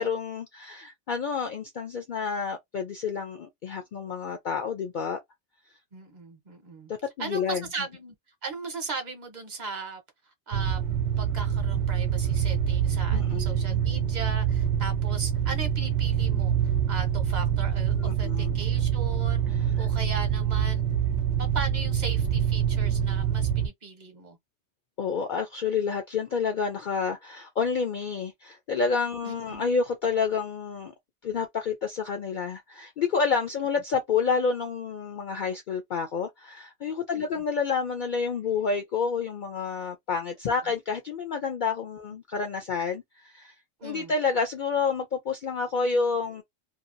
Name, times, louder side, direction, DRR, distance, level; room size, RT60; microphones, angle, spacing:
voice 1, 0.0-5.2 7.2-7.6 13.1-13.8 17.9-18.6 25.0-30.9 31.2-43.5 43.8-46.4, left 5 dB, 60° left, 0.5 m, -29 dB
voice 2, 5.9-6.9 7.2-8.1 8.4-10.0 10.5-10.8 11.2-16.5 16.9-19.4 19.8-20.8 21.4-24.4 29.2-29.6 37.1-37.4 43.8-44.1, right 4 dB, 40° right, 1.0 m, -37 dB
sound 1, 10.5-23.7, right 8 dB, 75° right, 0.9 m, -26 dB
2.8 x 2.3 x 2.5 m
omnidirectional pair, 1.2 m